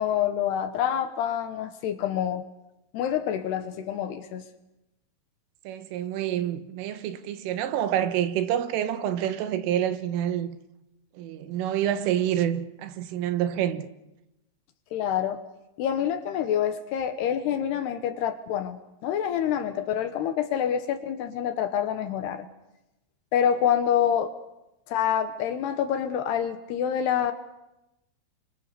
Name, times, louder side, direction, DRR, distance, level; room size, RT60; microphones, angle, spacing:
voice 1, 0.0-2.4 2.9-4.4 14.9-15.4 15.8-22.5 23.3-24.3 24.9-27.3, left 9 dB, 70° left, 2.8 m, -27 dB
voice 2, 5.7-10.6 11.2-13.9, right 10 dB, 85° right, 3.9 m, -27 dB
29.5 x 24.5 x 6.8 m
omnidirectional pair, 5.6 m